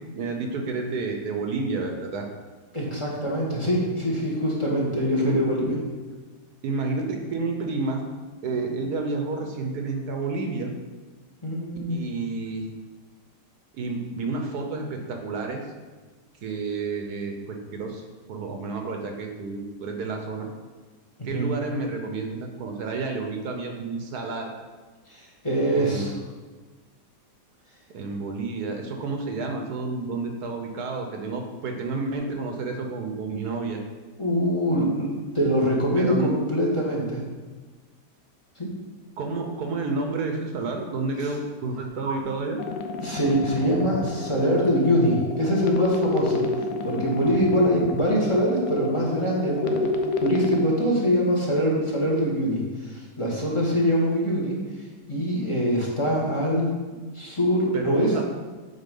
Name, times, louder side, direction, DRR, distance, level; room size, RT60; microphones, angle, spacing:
voice 1, 0.2-2.3 5.2-5.4 6.6-8.0 8.4-10.7 11.9-12.7 13.7-15.6 16.4-18.0 18.3-20.5 21.2-24.5 25.7-26.1 27.9-33.8 34.7-34.9 36.0-36.3 39.2-42.6 57.7-58.2, right 3 dB, 70° right, 3 dB, 1.4 m, -30 dB
voice 2, 2.7-5.8 11.4-12.1 21.3-21.5 25.1-26.1 34.2-35.1 35.3-37.2 38.5-38.7 43.0-46.4 46.8-49.9 50.2-54.6 55.1-58.2, equal, 20° left, -4 dB, 1.4 m, -24 dB
sound 1, 42.6-50.6, left 3 dB, 85° left, 1.3 m, -29 dB
8.3 x 4.2 x 5.3 m, 1.3 s
omnidirectional pair, 1.8 m